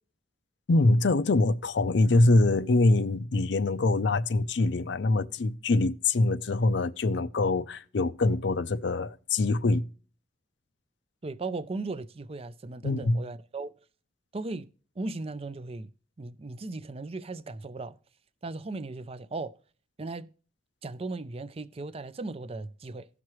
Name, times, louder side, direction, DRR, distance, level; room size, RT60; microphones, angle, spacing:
voice 1, 0.7-9.9 12.8-13.2, left 2 dB, 70° left, 0.5 m, -24 dB
voice 2, 11.2-13.7 14.3-14.7 15.0-15.9 16.2-18.0 18.4-19.5 20.0-20.3 20.8-23.1, right 3 dB, 35° right, 0.5 m, -37 dB
16.5 x 6.0 x 3.1 m
head